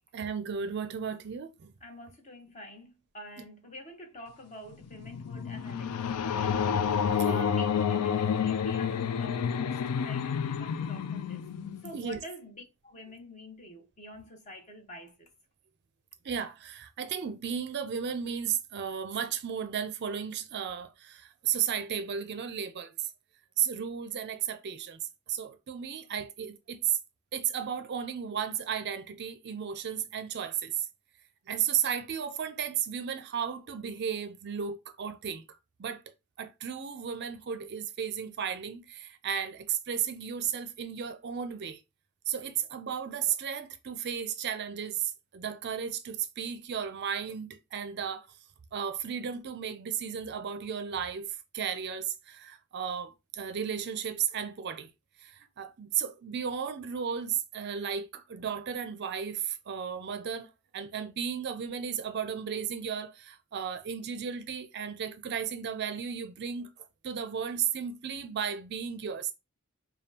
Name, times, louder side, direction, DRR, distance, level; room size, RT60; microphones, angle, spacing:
voice 1, 0.1-1.7 7.1-7.5 11.9-12.2 16.2-23.1 23.6-27.0 27.3-30.9 31.5-36.0 36.4-41.8 42.3-48.3 48.7-54.9 55.2-66.7 67.0-69.3, right 8 dB, 50° right, 0.4 m, -34 dB
voice 2, 1.8-11.5 11.8-15.3, left 1 dB, 30° left, 1.0 m, -47 dB
sound 1, 4.7-12.1, left 7 dB, 80° left, 0.4 m, -29 dB
5.2 x 2.3 x 2.8 m
head